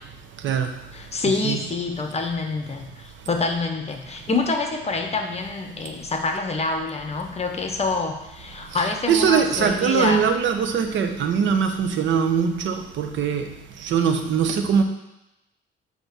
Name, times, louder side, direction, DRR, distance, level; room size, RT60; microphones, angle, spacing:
voice 1, 0.9-10.2, left 3 dB, 35° left, 4 dB, 0.9 m, -26 dB
voice 2, 8.7-13.5 13.8-14.8, right 6 dB, 75° right, 6 dB, 0.8 m, -22 dB
7.9 x 2.9 x 6.1 m, 0.92 s
cardioid pair, 90°, 20 cm